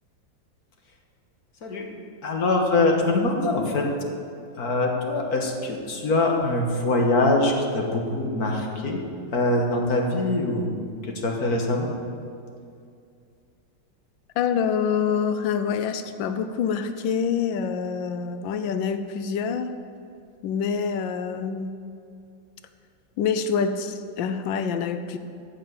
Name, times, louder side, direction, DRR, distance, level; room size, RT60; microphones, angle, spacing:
voice 1, 2.2-3.9 4.6-9.0 9.3-10.7 11.0-11.9, left 2 dB, 55° left, 1 dB, 1.8 m, -23 dB
voice 2, 14.4-19.7 20.4-21.7 23.2-25.2, left 6 dB, 85° left, 10 dB, 1.4 m, -26 dB
14.5 x 5.9 x 7.7 m, 2.4 s
omnidirectional pair, 2.0 m